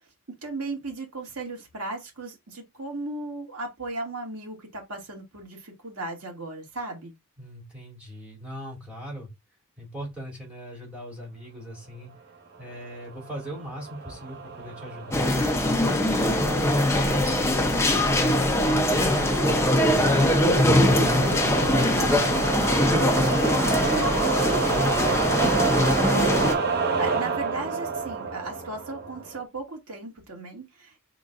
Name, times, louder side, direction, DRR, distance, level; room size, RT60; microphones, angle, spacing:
voice 1, 0.4-7.1 26.1-26.5 27.0-31.0, right 2 dB, 75° right, 2.1 m, -36 dB
voice 2, 7.4-9.3 9.8-12.1 12.6-15.3 15.7-17.3 17.9-20.8 21.3-25.3, equal, 5° right, 3.0 m, -39 dB
sound 1, 12.9-29.4, right 5 dB, 45° right, 1.2 m, -29 dB
sound 2, 15.1-26.5, left 1 dB, 10° left, 0.7 m, -22 dB
5.0 x 3.9 x 2.5 m
head